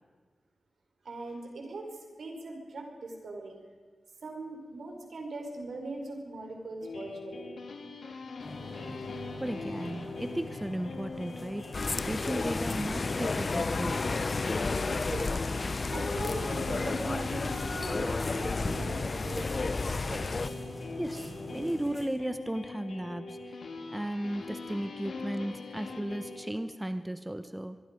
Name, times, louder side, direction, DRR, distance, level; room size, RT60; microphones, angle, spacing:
voice 1, 1.0-3.6 4.2-7.6 15.0-15.4 15.9-20.3, right 2 dB, 75° right, 3 dB, 4.8 m, -40 dB
sound 1, 6.8-26.5, left 3 dB, 85° left, 3.0 m, -42 dB
sound 2, 8.4-22.0, left 1 dB, 30° left, 7.0 m, -43 dB
voice 2, 9.4-14.1 21.0-23.6 23.9-27.8, right 1 dB, 10° right, 10 dB, 0.9 m, -35 dB
sound 3, 11.7-20.5, left 3 dB, 45° left, 0.7 m, -32 dB
24.5 x 22.5 x 5.2 m, 1.5 s
wide cardioid pair, 80°, 0 cm